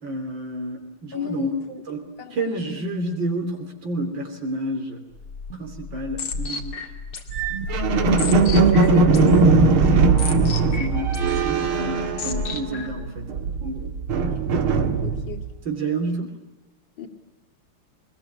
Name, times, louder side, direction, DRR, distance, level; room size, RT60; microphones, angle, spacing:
voice 1, 0.0-1.6 1.9-5.0 5.5-6.8 10.8-13.9 15.7-16.3, right 2 dB, 60° right, 3 dB, 3.9 m, -30 dB
voice 2, 1.1-1.8 2.2-2.8 8.6-9.4 14.4-14.5 15.0-15.4 17.0-17.1, left 6 dB, 60° left, 3 dB, 3.2 m, -35 dB
sound 1, 5.2-13.1, left 4 dB, 80° left, 3.1 m, -33 dB
sound 2, 7.3-12.9 13.2-15.5, right 3 dB, 80° right, 2.7 m, -19 dB
23.0 x 21.0 x 9.9 m, 1.0 s
omnidirectional pair, 2.3 m